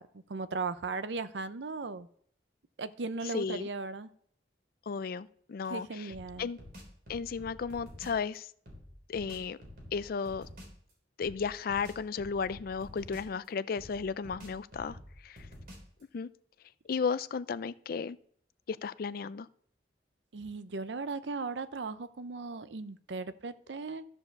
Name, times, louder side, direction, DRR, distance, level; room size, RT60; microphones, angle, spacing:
voice 1, 0.0-2.1 2.8-4.1 5.7-6.5 20.3-24.0, right 4 dB, 80° right, 13 dB, 0.6 m, -37 dB
voice 2, 3.3-3.7 4.9-6.1 6.4-6.6 7.1-8.5 9.1-9.6 9.9-10.5 11.2-15.0 15.2-15.5 16.1-16.3 16.9-18.2 18.7-19.5, left 5 dB, 55° left, 17 dB, 0.4 m, -34 dB
sound 1, 6.1-8.2 8.7-10.8 11.2-13.5 13.8-16.0, equal, 55° right, 3.4 m, -49 dB
13.5 x 4.8 x 6.6 m, 0.63 s
head